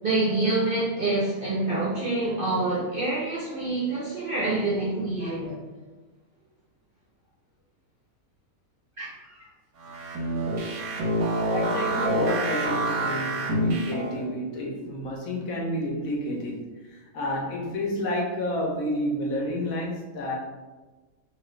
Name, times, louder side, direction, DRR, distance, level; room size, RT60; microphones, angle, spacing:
voice 1, 0.0-5.6 9.0-9.1 9.3-9.5 9.9-10.4, right 2 dB, 65° right, -6 dB, 0.5 m, -27 dB
sound 1, 9.8-14.3, right 1 dB, 90° right, 1.1 m, -27 dB
voice 2, 11.5-20.4, left 1 dB, 75° left, -2 dB, 1.1 m, -30 dB
2.9 x 2.4 x 3.1 m, 1.2 s
omnidirectional pair, 1.5 m